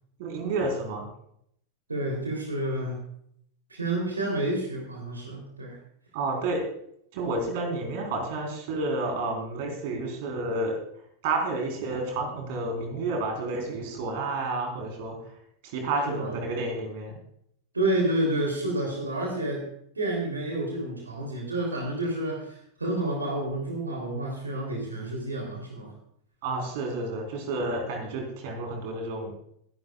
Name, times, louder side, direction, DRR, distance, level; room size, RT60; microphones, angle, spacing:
voice 1, 0.2-1.1 6.1-6.6 7.1-10.7 11.2-15.1 15.6-17.2 26.4-29.4, right 2 dB, 50° right, 2 dB, 4.3 m, -30 dB
voice 2, 1.9-3.0 3.7-5.8 16.1-16.4 17.7-19.7 19.9-25.9, right 1 dB, 80° right, 0 dB, 3.4 m, -29 dB
24.0 x 11.5 x 2.4 m, 0.69 s
figure-of-eight pair, 90°, 0 cm